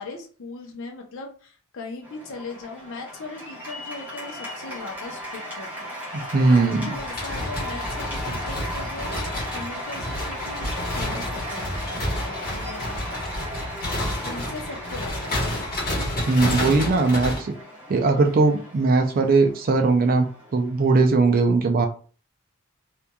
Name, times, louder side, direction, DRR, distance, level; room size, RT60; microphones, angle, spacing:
voice 1, 0.0-5.9 6.4-13.1 14.2-15.6, left 3 dB, 65° left, 2 dB, 0.7 m, -39 dB
Cheering / Applause, 2.0-21.3, left 1 dB, 10° right, 1.1 m, -36 dB
voice 2, 6.3-6.9 16.3-17.5 17.9-20.3 20.5-21.9, right 3 dB, 40° right, 5 dB, 0.4 m, -19 dB
sound 1, 6.9-17.4, left 1 dB, 45° left, 1.1 m, -30 dB
3.0 x 2.4 x 2.2 m, 0.39 s
head